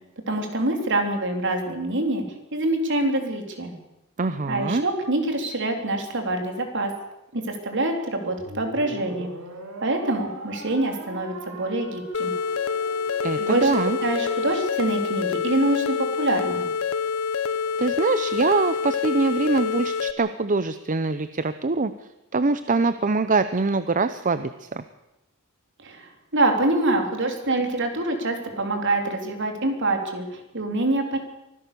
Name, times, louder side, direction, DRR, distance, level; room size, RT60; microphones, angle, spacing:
voice 1, 0.3-2.2 2.5-3.7 4.5-6.9 7.3-9.3 9.8-12.3 13.4-13.7 14.0-16.7 25.8-31.2, right 2 dB, 55° right, 4 dB, 3.6 m, -25 dB
voice 2, 4.2-4.9 13.2-14.0 17.8-21.9 22.3-24.8, right 3 dB, 35° right, 12 dB, 0.7 m, -23 dB
sound 1, 8.4-14.9, right 3 dB, 70° right, 3.6 m, -40 dB
sound 2, 12.1-20.1, left 6 dB, 70° left, 1.0 m, -26 dB
24.5 x 16.0 x 7.0 m, 0.91 s
head